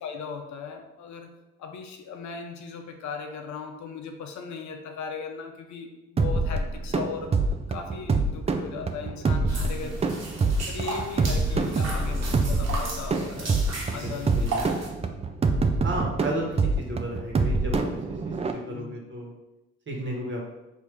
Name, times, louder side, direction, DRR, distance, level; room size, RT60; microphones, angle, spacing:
voice 1, 0.0-1.3 1.6-7.4 7.7-10.1 10.7-13.6 13.9-14.7 15.6-15.8 18.7-18.9, left 5 dB, 70° left, 5 dB, 0.6 m, -38 dB
sound 1, 6.2-18.5, right 3 dB, 20° right, 0.3 m, -26 dB
sound 2, 9.5-14.9, right 3 dB, 55° right, 1.1 m, -35 dB
voice 2, 9.6-10.2 11.5-11.7 13.8-14.7 15.8-19.3 19.9-20.5, right 1 dB, 40° right, -1 dB, 1.3 m, -34 dB
4.8 x 2.7 x 3.3 m, 0.97 s
cardioid pair, 90°, 30 cm